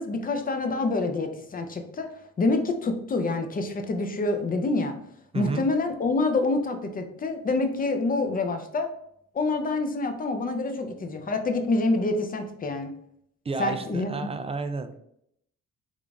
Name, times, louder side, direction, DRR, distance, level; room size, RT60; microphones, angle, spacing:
voice 1, 0.0-2.1 2.4-5.0 5.3-8.9 9.3-12.9 13.6-14.3, left 3 dB, 30° left, 6 dB, 0.6 m, -27 dB
voice 2, 5.3-5.7 13.4-15.0, right 4 dB, 20° right, 8 dB, 0.3 m, -31 dB
3.6 x 2.5 x 3.4 m, 0.72 s
cardioid pair, 90°, 30 cm